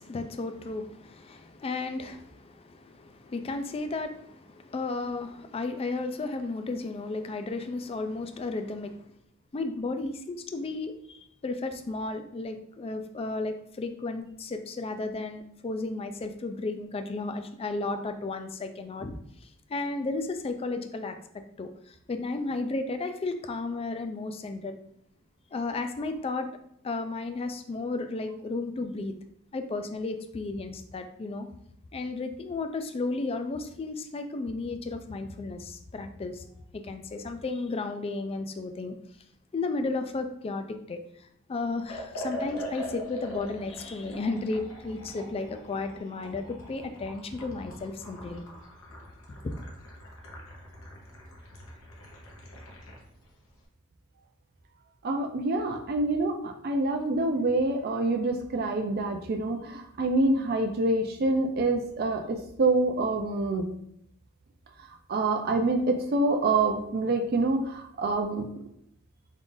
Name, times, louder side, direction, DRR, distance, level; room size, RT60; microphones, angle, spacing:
voice 1, 0.0-9.1 9.5-21.1 21.6-24.8 25.5-26.5 26.8-29.1 29.5-31.5 31.9-36.4 36.7-39.0 39.5-41.0 41.5-48.4 49.3-49.4, left 3 dB, 30° left, 7 dB, 0.3 m, -33 dB
Liquid, 41.8-53.1, equal, 90° left, 0.9 m, -42 dB
voice 2, 55.0-63.7 65.1-68.5, right 2 dB, 50° right, 4 dB, 0.4 m, -26 dB
3.7 x 2.4 x 3.8 m, 0.72 s
head